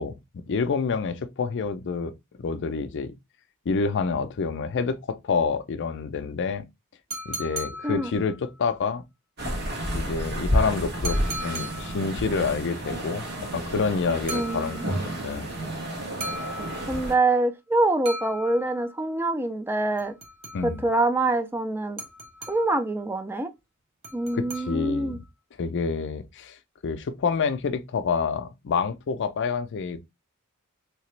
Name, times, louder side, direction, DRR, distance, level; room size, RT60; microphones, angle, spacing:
voice 1, 0.0-2.1 2.4-3.1 3.7-6.6 7.3-9.0 9.9-11.2 11.4-15.5 20.5-20.9 24.3-25.2 25.6-26.6 26.8-30.0, left 5 dB, 55° left, 0.4 m, -28 dB
sound 1, 7.1-8.6 11.0-12.2 14.3-15.2 16.2-17.2 18.1-19.1 20.0-20.9 22.0-22.9 24.0-25.1, equal, 25° right, 0.8 m, -38 dB
sound 2, 9.4-17.1, equal, 50° right, 1.4 m, -30 dB
voice 2, 14.3-14.8 16.9-20.2 20.6-22.0 22.5-23.5 24.1-25.2, right 2 dB, 10° right, 0.4 m, -25 dB
3.3 x 2.9 x 3.1 m
head